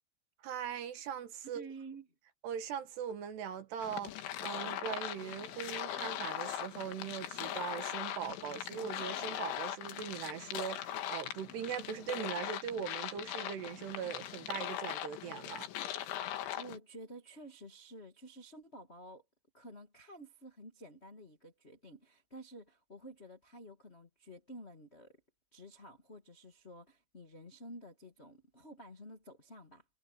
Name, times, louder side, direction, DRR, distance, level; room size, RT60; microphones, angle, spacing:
voice 1, 0.4-1.7 2.4-15.7, right 8 dB, 65° right, 3.4 m, -40 dB
voice 2, 1.5-2.1 16.5-19.2 19.5-25.2 25.5-29.8, right 1 dB, 40° left, 0.9 m, -51 dB
sound 1, 3.8-16.8, left 12 dB, 75° left, 3.9 m, -40 dB
omnidirectional pair, 5.5 m